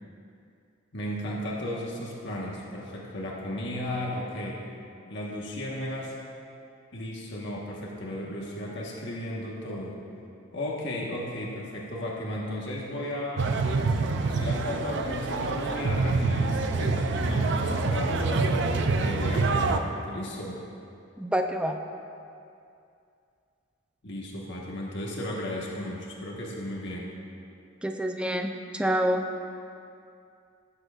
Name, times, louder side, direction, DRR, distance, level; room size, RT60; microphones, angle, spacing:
voice 1, 0.9-4.6 5.0-6.2 6.9-10.0 10.5-13.5 14.2-18.5 19.0-20.6 24.0-27.1, left 1 dB, 60° left, -3 dB, 1.4 m, -34 dB
sound 1, 13.4-19.8, right 3 dB, 60° right, 0.6 m, -26 dB
voice 2, 21.2-21.8 27.8-29.2, equal, 5° right, 4 dB, 0.5 m, -27 dB
18.5 x 7.9 x 2.5 m, 2.5 s
head